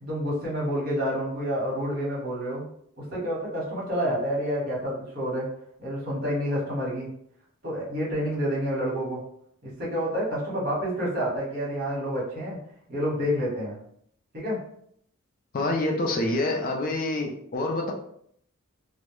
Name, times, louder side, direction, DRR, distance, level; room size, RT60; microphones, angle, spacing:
voice 1, 0.0-2.7 3.0-5.5 5.8-7.1 7.6-9.2 9.6-12.6 12.9-13.8 14.3-14.6, equal, 45° right, -6 dB, 1.1 m, -28 dB
voice 2, 15.5-17.9, left 2 dB, 40° left, 1 dB, 0.4 m, -27 dB
2.2 x 2.0 x 3.0 m, 0.67 s
head